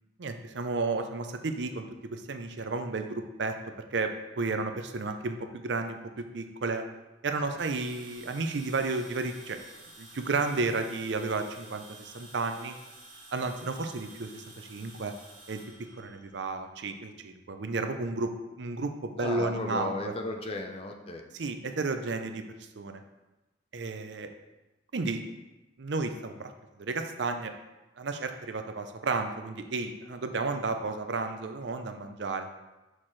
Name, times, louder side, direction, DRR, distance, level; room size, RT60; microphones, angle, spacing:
voice 1, 0.2-3.6 3.9-6.8 7.2-9.6 10.0-12.8 13.3-15.1 15.5-15.6 16.0-18.3 18.6-20.1 21.4-22.4 22.8-23.0 23.7-24.3 24.9-25.2 25.8-26.5 26.8-27.5 28.0-32.5, right 3 dB, 65° right, 7 dB, 0.6 m, -32 dB
sound 1, 7.6-16.8, right 2 dB, 30° right, 1.8 m, -51 dB
voice 2, 19.2-21.2, left 2 dB, 30° left, 4 dB, 0.6 m, -36 dB
6.5 x 5.8 x 3.2 m, 1.0 s
head